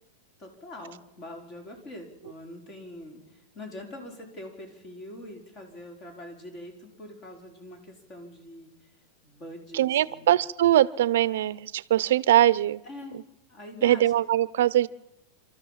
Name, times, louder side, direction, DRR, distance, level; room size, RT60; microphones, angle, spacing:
voice 1, 0.4-8.9 9.2-10.3 12.8-13.2 13.5-14.0, left 1 dB, 30° left, 4 dB, 4.6 m, -43 dB
voice 2, 9.7-12.8 13.8-14.9, right 13 dB, 75° right, 18 dB, 0.7 m, -22 dB
27.0 x 13.5 x 7.4 m, 0.91 s
supercardioid pair, 155°, 0 cm